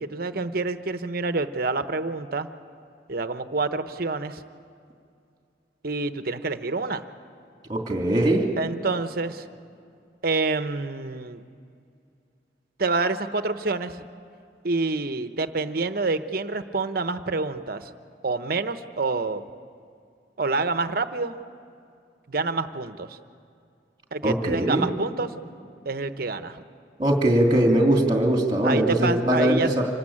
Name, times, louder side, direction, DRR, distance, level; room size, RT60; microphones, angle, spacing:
voice 1, 0.0-2.5 3.1-4.4 5.8-7.0 8.6-9.4 10.2-11.4 12.8-14.0 14.6-17.9 18.2-19.4 20.4-21.4 22.3-23.2 24.1-25.3 25.8-26.6 28.6-29.7, right 3 dB, 50° right, 10 dB, 0.9 m, -27 dB
voice 2, 7.7-8.5 24.2-24.8 27.0-29.9, right 1 dB, 25° right, 2 dB, 2.8 m, -21 dB
26.0 x 19.0 x 8.7 m, 2.4 s
head